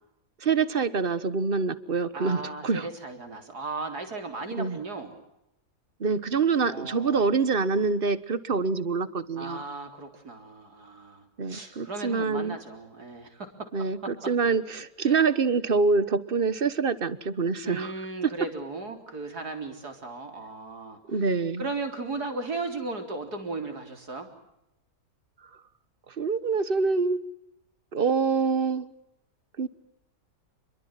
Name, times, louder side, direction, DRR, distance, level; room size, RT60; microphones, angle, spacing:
voice 1, 0.4-2.9 4.6-4.8 6.0-9.6 11.4-12.6 13.7-17.9 21.1-21.7 26.2-27.2 27.9-28.9 29.6-29.7, right 4 dB, 40° right, 15 dB, 1.3 m, -26 dB
voice 2, 2.1-5.2 6.7-7.2 9.4-13.9 15.0-15.2 17.6-21.0 21.6-24.3, right 3 dB, 80° right, 5 dB, 4.4 m, -36 dB
28.5 x 22.5 x 7.6 m, 0.85 s
omnidirectional pair, 1.7 m